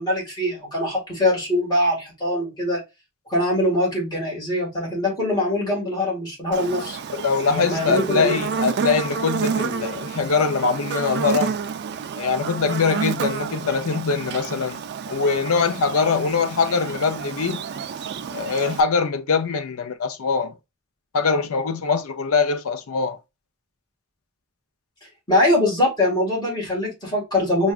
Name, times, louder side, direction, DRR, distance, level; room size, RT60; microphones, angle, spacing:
voice 1, 0.0-2.8 3.3-7.0 7.5-8.4 25.0-27.7, left 1 dB, 20° left, 1.8 m, -23 dB
Buzz, 6.5-18.8, right 6 dB, 50° right, 0.4 m, -30 dB
voice 2, 7.1-11.6 12.2-14.8 15.1-17.6 18.3-20.5 21.1-23.2, left 5 dB, 80° left, 0.5 m, -22 dB
5.9 x 2.3 x 2.4 m
head